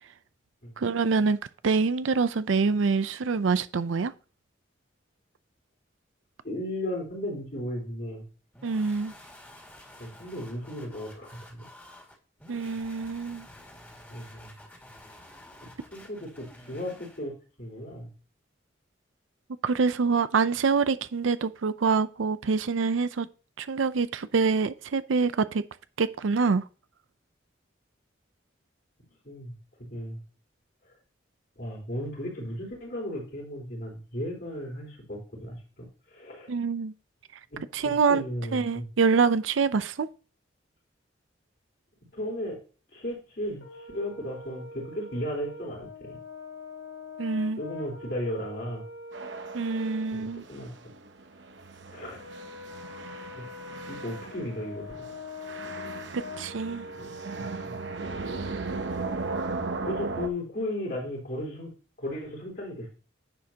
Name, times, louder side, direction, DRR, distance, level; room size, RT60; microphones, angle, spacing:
voice 1, 0.8-1.4 1.6-4.1 8.6-9.1 12.5-13.5 19.6-23.3 23.6-25.6 26.0-26.6 36.5-36.9 37.7-38.2 38.5-40.1 47.2-47.6 49.5-50.4 56.4-56.9, right 4 dB, 90° right, 0.5 m, -25 dB
voice 2, 6.4-8.3 10.0-11.7 14.1-14.6 15.9-17.3 17.6-18.1 29.2-29.5 29.9-30.2 31.6-36.5 37.5-38.9 42.1-42.6 42.9-46.2 47.6-48.8 50.1-50.7 51.9-52.2 53.3-53.5 53.9-55.1 56.8-57.1 57.6-57.8 59.8-61.7 62.0-62.9, left 1 dB, 55° left, 3.7 m, -35 dB
sound 1, 8.5-17.2, left 1 dB, 10° left, 2.1 m, -50 dB
Brass instrument, 43.6-50.1 52.2-58.8, left 2 dB, 80° left, 2.1 m, -43 dB
sound 2, 49.1-60.3, right 3 dB, 70° right, 0.9 m, -37 dB
10.5 x 7.3 x 2.8 m
head